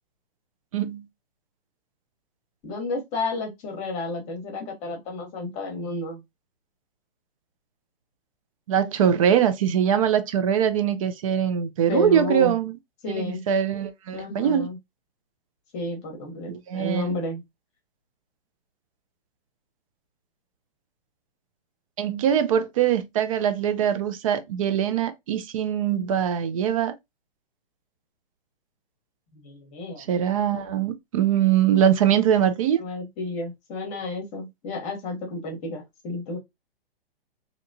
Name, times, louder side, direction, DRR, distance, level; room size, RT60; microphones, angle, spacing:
voice 1, 0.7-1.0 8.7-12.7 13.1-14.7 16.5-17.2 22.0-26.9 30.1-32.8, right 9 dB, 35° right, 0.4 m, -22 dB
voice 2, 2.6-6.2 11.9-12.6 13.0-13.4 14.1-14.8 15.7-17.4 29.3-30.1 32.7-36.4, left 3 dB, 25° left, 0.9 m, -31 dB
2.9 x 2.1 x 2.6 m
hypercardioid pair, 135°, 30 cm